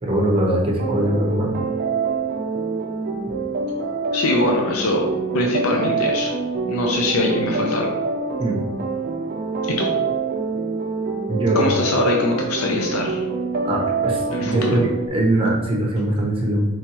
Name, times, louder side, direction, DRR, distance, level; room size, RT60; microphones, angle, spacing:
voice 1, 0.0-1.5 8.4-8.6 11.3-11.7 13.6-16.7, right 1 dB, 25° right, -2 dB, 0.9 m, -21 dB
sound 1, 0.8-15.1, right 4 dB, 45° right, 0.4 m, -25 dB
voice 2, 4.1-5.0 5.3-6.3 6.7-7.9 9.7-9.9 11.5-13.3 14.3-14.8, left 2 dB, 90° left, 0 dB, 0.6 m, -22 dB
5.2 x 3.1 x 3.0 m, 1.1 s
head